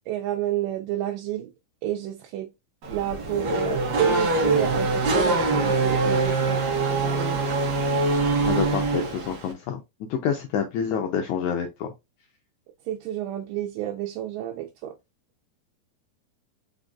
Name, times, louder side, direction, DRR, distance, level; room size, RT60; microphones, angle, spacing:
voice 1, 0.1-1.5 1.8-2.5 2.9-7.4 12.9-14.9, right 11 dB, 80° right, 2.2 m, -30 dB
Race car auto racing / Accelerating revving vroom, 2.8-9.5, right 3 dB, 65° right, 1.2 m, -24 dB
voice 2, 8.4-9.8 10.1-11.9, left 7 dB, 85° left, 1.7 m, -27 dB
5.0 x 3.9 x 2.3 m
omnidirectional pair, 4.0 m